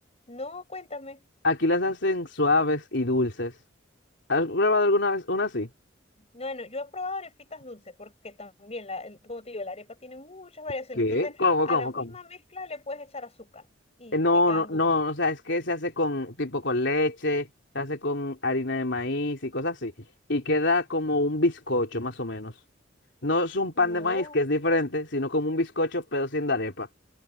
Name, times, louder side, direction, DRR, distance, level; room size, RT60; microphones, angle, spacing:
voice 1, 0.3-1.2 6.3-11.4 11.7-13.7 14.0-14.2 14.5-14.9 23.8-24.4, left 2 dB, 35° left, 6.1 m, -38 dB
voice 2, 1.4-3.5 4.3-5.7 11.0-12.1 14.1-17.5 17.7-19.9 20.3-22.5 23.2-26.9, left 2 dB, 65° left, 4.0 m, -25 dB
head